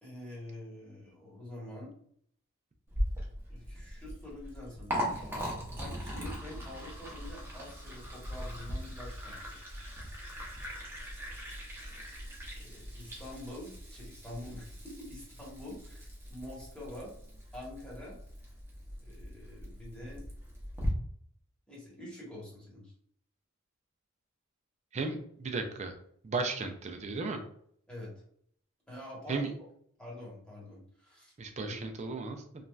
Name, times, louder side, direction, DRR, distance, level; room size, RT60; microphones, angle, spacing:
voice 1, 0.0-1.9 3.5-5.2 5.8-9.7 12.6-17.1 17.5-18.2 19.0-20.2 21.7-22.9 27.9-28.1 28.9-29.6 30.0-31.3 31.7-31.8, left 1 dB, 5° left, -6 dB, 1.1 m, -46 dB
Liquid, 2.9-20.9, equal, 10° right, 0.7 m, -40 dB
voice 2, 24.9-25.9 26.2-27.4 29.3-29.5 31.4-32.4, right 3 dB, 30° right, 5 dB, 0.4 m, -35 dB
3.1 x 2.6 x 2.3 m, 0.64 s
head